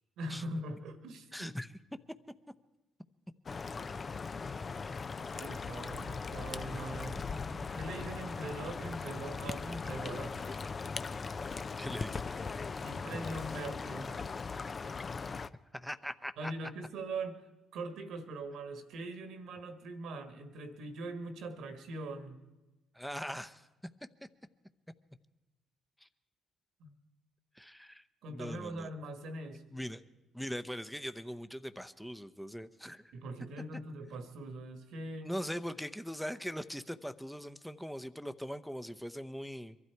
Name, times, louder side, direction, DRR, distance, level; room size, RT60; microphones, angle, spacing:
voice 1, 0.2-1.5 4.6-4.7 5.2-7.2 7.7-10.4 12.8-14.1 16.4-17.4 17.7-22.4 26.8-26.9 28.2-29.6 33.1-35.4, right 2 dB, 70° right, 8 dB, 1.6 m, -42 dB
voice 2, 1.3-1.7 7.5-8.1 11.8-12.2 15.1-15.2 15.7-16.5 22.9-23.7 26.0-26.1 27.5-28.9 29.7-30.0 30.3-33.1 35.2-39.8, equal, ahead, 10 dB, 0.8 m, -41 dB
sound 1, 3.5-15.5, left 4 dB, 40° left, 0.5 m, -39 dB
23.0 x 12.5 x 4.6 m, 1.1 s
supercardioid pair, 60°, 0 cm